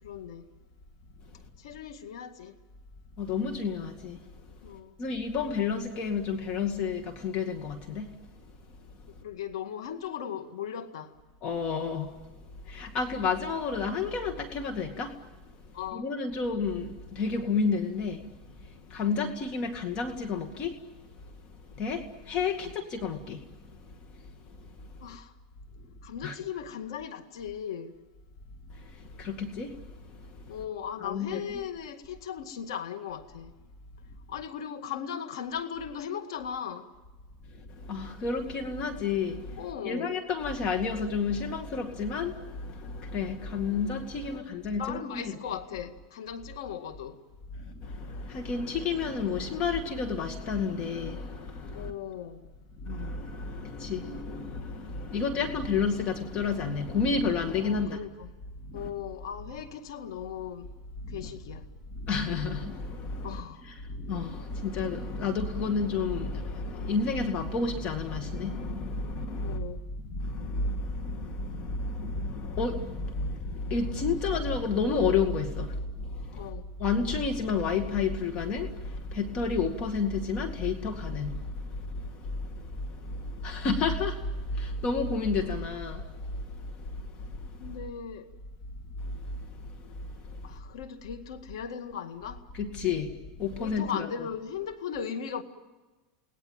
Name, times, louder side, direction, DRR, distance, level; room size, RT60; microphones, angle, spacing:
voice 1, 0.0-0.5 1.6-2.5 4.6-4.9 9.2-11.1 15.7-16.1 19.0-19.2 22.6-22.7 25.0-25.3 26.0-28.0 30.5-33.5 34.3-36.9 39.6-40.1 43.7-43.8 44.2-47.2 51.7-52.5 57.6-58.3 58.7-60.7 61.1-61.6 63.2-63.6 69.4-69.8 76.3-76.6 85.4-85.7 87.6-88.3 90.3-92.4 93.6-95.4, left 8 dB, 85° left, 1.9 m, -38 dB
voice 2, 3.2-4.2 5.0-8.1 11.4-12.1 12.7-15.2 15.9-18.2 18.6-20.8 21.8-23.4 26.2-26.4 28.7-29.8 30.4-30.5 31.0-31.4 37.8-45.3 47.6-51.9 52.8-58.0 58.7-58.9 61.0-61.3 61.9-69.6 70.1-76.5 76.8-87.5 89.1-89.2 89.6-89.9 90.3-90.4 92.5-94.1, left 4 dB, 40° left, 2.1 m, -31 dB
29.0 x 19.5 x 9.0 m
supercardioid pair, 135°, 3 cm